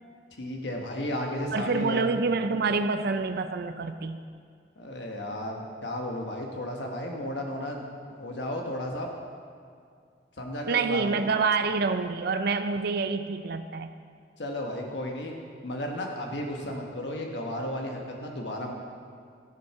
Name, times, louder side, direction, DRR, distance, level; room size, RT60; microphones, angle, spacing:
voice 1, 0.3-2.0 4.8-7.8 8.2-9.1 10.4-11.3 14.4-15.3 15.6-18.7, left 1 dB, 70° left, 1 dB, 1.2 m, -33 dB
voice 2, 1.5-4.2 10.7-13.9, right 4 dB, 60° right, 10 dB, 0.5 m, -27 dB
14.0 x 7.3 x 5.8 m, 2.2 s
head